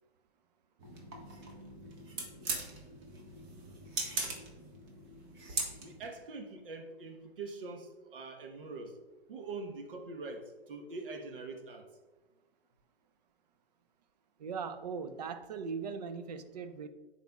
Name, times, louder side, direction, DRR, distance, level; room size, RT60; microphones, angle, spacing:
sound 1, 0.8-6.1, right 3 dB, 25° right, 0.9 m, -40 dB
voice 1, 5.8-9.0 9.3-11.9, right 3 dB, 55° right, 4 dB, 1.1 m, -43 dB
voice 2, 14.4-16.9, right 5 dB, 40° right, 10 dB, 0.5 m, -39 dB
10.0 x 4.3 x 2.3 m, 1.3 s
figure-of-eight pair, 130°, 32 cm